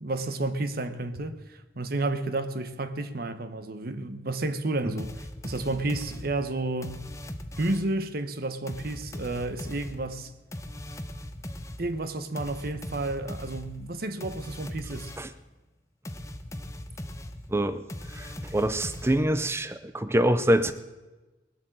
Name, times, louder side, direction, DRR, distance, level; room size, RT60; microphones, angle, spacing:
voice 1, 0.0-7.0 7.6-10.3 11.8-15.1, right 2 dB, 50° right, 0.9 m, -31 dB
sound 1, 5.0-8.0 8.7-15.4 16.0-19.6, left 1 dB, 15° left, 0.8 m, -40 dB
voice 2, 17.5-17.8 18.1-20.7, right 1 dB, 15° right, 0.5 m, -25 dB
19.5 x 7.9 x 7.7 m
head